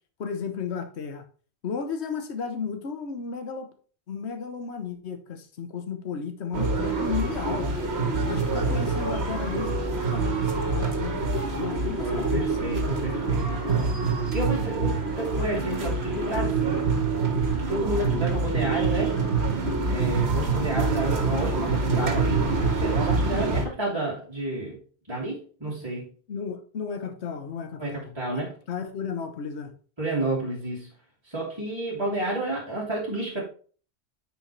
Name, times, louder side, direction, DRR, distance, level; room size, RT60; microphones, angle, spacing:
voice 1, 0.2-1.2 1.6-3.7 4.1-7.7 8.3-9.8 10.1-12.7 25.7-25.8 26.3-28.4 28.7-29.7, left 6 dB, 70° left, 7 dB, 1.3 m, -34 dB
sound 1, 6.5-23.7, right 3 dB, 65° right, 1.8 m, -26 dB
voice 2, 12.0-13.8 14.3-16.9 17.7-19.2 19.9-22.5 22.8-24.8 25.1-26.1 27.8-28.5 30.0-30.9 31.2-33.4, right 2 dB, 20° right, -7 dB, 2.6 m, -30 dB
9.8 x 5.6 x 3.2 m, 0.41 s
omnidirectional pair, 1.2 m